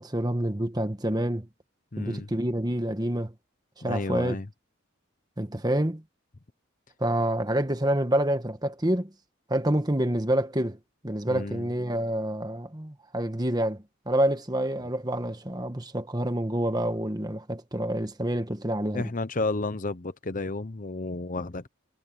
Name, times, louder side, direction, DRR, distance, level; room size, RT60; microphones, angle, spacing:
voice 1, 0.0-1.5 2.0-3.3 3.8-4.4 5.4-6.0 7.0-9.1 9.5-10.8 11.0-19.1, right 1 dB, 20° right, 1.4 m, -27 dB
voice 2, 1.9-2.3 3.8-4.5 11.3-11.7 18.9-21.7, left 2 dB, 40° left, 0.8 m, -32 dB
head